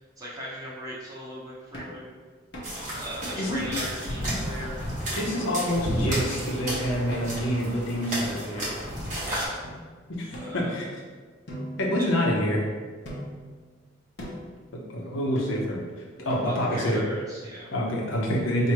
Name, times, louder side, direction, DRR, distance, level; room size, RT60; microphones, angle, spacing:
voice 1, 0.0-2.1 3.0-4.8 9.2-9.6 10.4-10.8 14.9-15.2 16.3-17.7, right 1 dB, 20° right, -7 dB, 1.0 m, -39 dB
sound 1, 1.7-2.0 2.5-2.8 3.2-3.6 4.0-4.1 4.6-4.8 5.3-5.6 6.1-6.4 7.1-7.5 8.2-8.9 9.6-9.8 10.3-11.0 11.5-12.5 13.0-13.5 14.2-14.5 15.3-15.8 16.3-16.8, equal, 60° left, 0.9 m, -40 dB
sound 2, 2.6-9.5, equal, 40° right, 1.2 m, -32 dB
voice 2, 5.2-8.7 10.2-10.9 11.8-12.6 14.9-15.8 16.2-17.0 17.7-18.7, equal, 85° left, -2 dB, 0.9 m, -27 dB
4.6 x 2.7 x 3.0 m, 1.5 s
head